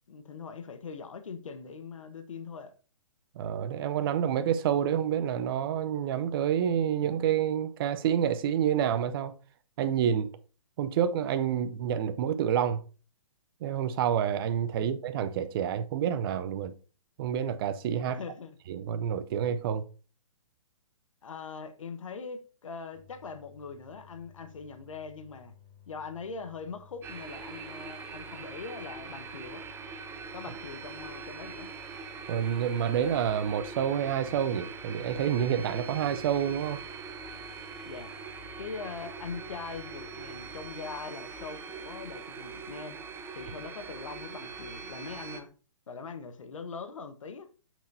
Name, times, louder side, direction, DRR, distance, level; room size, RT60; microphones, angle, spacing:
voice 1, 0.1-2.7 14.7-14.9 18.1-18.5 21.2-25.5 25.9-29.6 30.3-31.7 37.8-38.1 38.6-43.0 43.3-45.5 45.9-47.5, left 5 dB, 75° left, 1.1 m, -42 dB
voice 2, 3.4-9.3 9.8-10.3 10.8-12.8 13.6-16.7 17.2-18.2 18.7-19.8 32.3-36.8, right 9 dB, 45° right, 0.6 m, -28 dB
sound 1, 22.9-40.7, left 10 dB, 5° left, 4.1 m, -56 dB
sound 2, 27.0-45.4, right 5 dB, 15° right, 0.9 m, -42 dB
8.3 x 6.2 x 2.7 m
hypercardioid pair, 130°, 17 cm